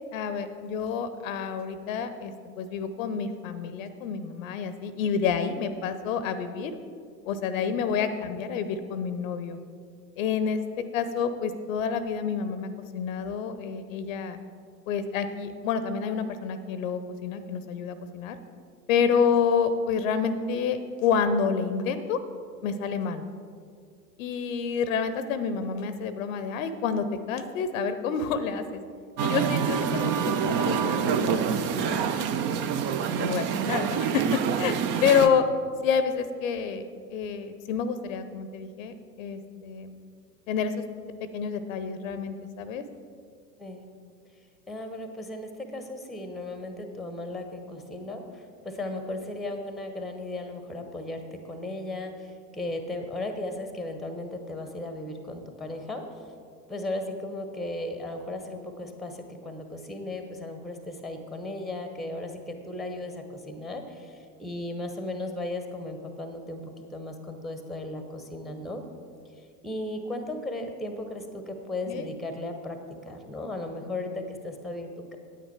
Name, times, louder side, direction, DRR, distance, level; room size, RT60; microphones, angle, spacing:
voice 1, 0.1-6.8 7.3-9.6 10.2-14.4 14.9-18.4 18.9-22.2 22.6-23.2 24.2-28.8 29.2-32.6 33.1-34.7 35.0-35.4 35.8-36.8 37.1-39.9 40.5-40.8 41.3-42.8 71.9-72.0, left 6 dB, 55° left, 11 dB, 0.7 m, -28 dB
Musical instrument, 29.2-35.3, right 7 dB, 25° right, 0.4 m, -26 dB
voice 2, 44.7-56.3 56.7-66.6 66.9-68.8 69.4-72.8 73.0-75.2, left 2 dB, ahead, 6 dB, 0.9 m, -36 dB
9.2 x 9.1 x 4.6 m, 2.2 s
figure-of-eight pair, 80°, 48 cm